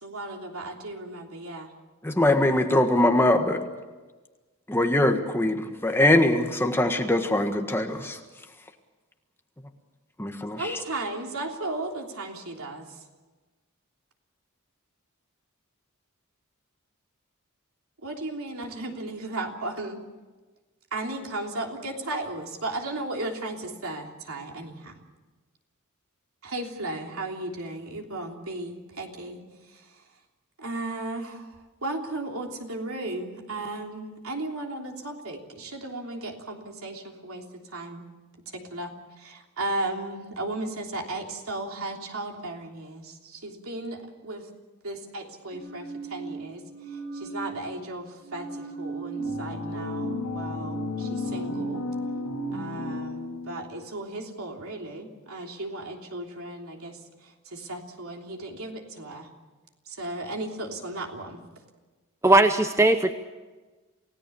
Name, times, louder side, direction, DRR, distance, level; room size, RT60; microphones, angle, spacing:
voice 1, 0.0-1.7 10.6-13.0 18.0-20.0 20.9-25.0 26.4-29.4 29.7-30.0 30.6-38.0 38.5-44.5 44.8-51.8 52.5-59.3 59.9-61.4, right 2 dB, 75° right, 2 dB, 3.3 m, -35 dB
voice 2, 2.0-3.6 4.7-8.2 10.2-10.8, left 1 dB, 10° left, 4 dB, 1.6 m, -22 dB
sound 1, 45.5-47.8 48.2-52.9, right 4 dB, 50° right, 6.4 m, -37 dB
sound 2, 49.2-53.7, left 4 dB, 90° left, 2.7 m, -34 dB
voice 3, 62.2-63.1, right 2 dB, 15° right, 8 dB, 0.8 m, -18 dB
28.5 x 17.5 x 7.1 m, 1.3 s
head